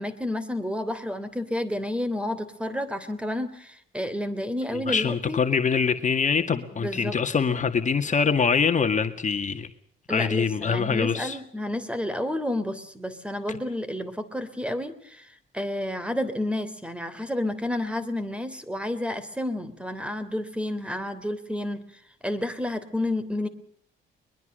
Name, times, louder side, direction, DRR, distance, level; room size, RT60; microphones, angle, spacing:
voice 1, 0.0-5.4 6.7-7.1 10.1-21.8 22.2-23.5, left 1 dB, 5° right, 3.2 m, -30 dB
voice 2, 4.9-9.7 10.1-11.4 13.5-13.6, left 6 dB, 40° left, 2.1 m, -24 dB
22.0 x 22.0 x 6.7 m
cardioid pair, 90°, 20 cm